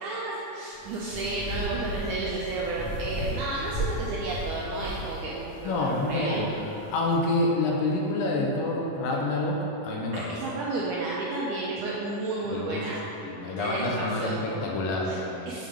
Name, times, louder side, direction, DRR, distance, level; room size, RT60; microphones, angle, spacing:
voice 1, 0.0-6.4 10.1-13.0 13.6-14.4 15.1-15.2 15.5-15.7, right 2 dB, 80° right, -5 dB, 1.8 m, -32 dB
sound 1, 0.7-7.1, right 1 dB, 60° left, 1.6 m, -36 dB
voice 2, 5.6-9.6 9.8-10.4 12.5-12.8 13.2-15.5, left 2 dB, 80° left, -2 dB, 2.4 m, -28 dB
6.9 x 3.8 x 4.9 m, 2.9 s
omnidirectional pair, 4.2 m